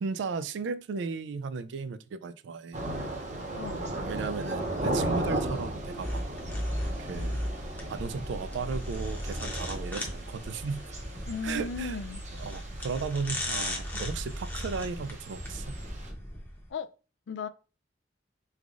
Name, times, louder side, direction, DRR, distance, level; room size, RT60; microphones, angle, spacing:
voice 1, 0.0-2.8 3.8-6.2 6.9-7.5 7.9-10.8 11.4-12.0 12.4-15.8, right 5 dB, 75° right, 0.3 m, -35 dB
Thunder / Rain, 2.7-16.1, right 1 dB, 40° right, 0.8 m, -37 dB
voice 2, 3.5-4.0 11.2-12.2 16.7-16.9 17.3-17.5, left 5 dB, 75° left, 0.3 m, -36 dB
sound 1, 6.0-16.7, equal, 10° left, 0.8 m, -36 dB
3.5 x 3.3 x 2.5 m
head